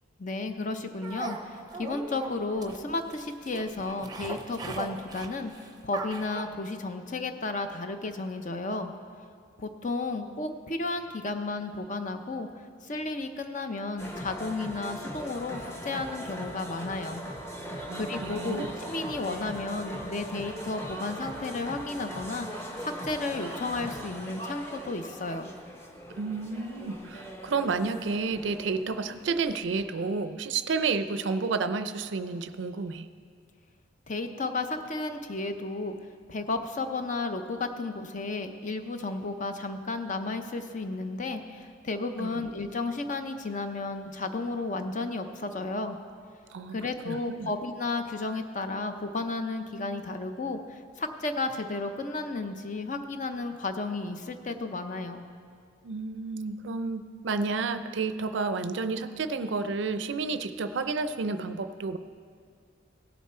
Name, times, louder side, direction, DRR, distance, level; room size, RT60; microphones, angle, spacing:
voice 1, 0.2-8.9 9.6-17.2 17.9-25.5 34.1-35.9 36.3-46.0 46.7-55.2, left 3 dB, 40° left, 7 dB, 0.6 m, -33 dB
sound 1, 1.0-6.4, right 3 dB, 20° right, 0.6 m, -39 dB
sound 2, 14.0-29.6, equal, 15° left, 0.9 m, -40 dB
voice 2, 17.9-18.6 26.2-33.1 42.2-42.4 46.5-46.8 47.0-47.5 55.8-62.0, right 4 dB, 65° right, 11 dB, 0.4 m, -31 dB
17.0 x 7.2 x 4.3 m, 2.2 s
head